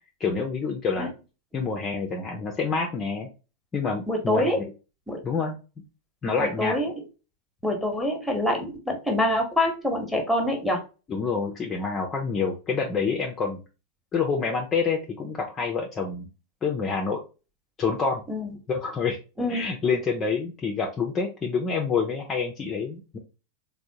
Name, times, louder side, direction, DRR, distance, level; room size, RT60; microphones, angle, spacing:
voice 1, 0.2-1.1 1.5-3.3 3.7-4.5 5.2-5.5 6.2-6.8 11.1-13.6 14.1-16.3 16.6-17.2 17.8-18.2 18.7-19.2 19.5-23.2, left 5 dB, 25° left, 1 dB, 0.5 m, -27 dB
voice 2, 4.1-4.6 5.1-5.2 6.4-7.0 7.6-10.8 18.3-18.5 19.4-19.7, left 1 dB, ahead, 3 dB, 0.9 m, -25 dB
3.5 x 2.1 x 2.7 m, 0.31 s
figure-of-eight pair, 90°, 0 cm